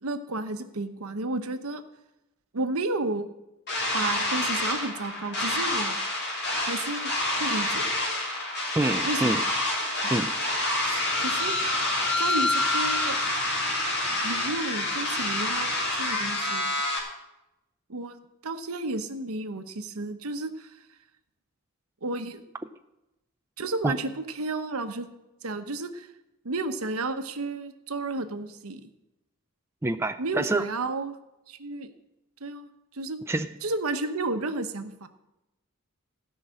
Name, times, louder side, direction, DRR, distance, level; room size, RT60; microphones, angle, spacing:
voice 1, 0.0-1.8 2.5-3.3 3.9-6.0 6.6-7.1 7.4-7.9 9.0-9.5 10.0-10.1 10.8-11.7 12.2-13.2 14.2-16.7 17.9-18.2 18.4-20.8 22.0-22.4 23.6-25.1 25.4-26.1 26.4-28.9 30.2-31.2 31.5-31.9 32.4-33.2 33.6-35.1, right 2 dB, 80° right, 8 dB, 1.0 m, -32 dB
sound 1, 3.7-17.0, left 2 dB, 50° left, 3.1 m, -27 dB
voice 2, 8.8-9.4 10.1-10.3 23.8-24.0 29.8-30.6 33.3-33.5, right 2 dB, 10° right, 7 dB, 0.3 m, -26 dB
16.0 x 5.6 x 7.6 m, 0.95 s
head